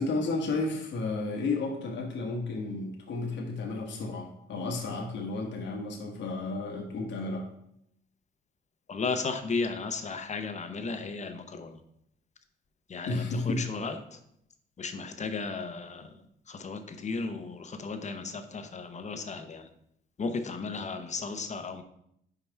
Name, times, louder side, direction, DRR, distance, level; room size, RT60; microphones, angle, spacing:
voice 1, 0.0-7.5 13.1-13.7, left 3 dB, 65° left, 0 dB, 1.2 m, -32 dB
voice 2, 8.9-11.8 12.9-14.0 14.8-16.1 16.5-19.7 20.2-21.8, left 4 dB, 35° left, 8 dB, 0.8 m, -34 dB
5.5 x 4.8 x 4.5 m, 0.74 s
cardioid pair, 90°, 20 cm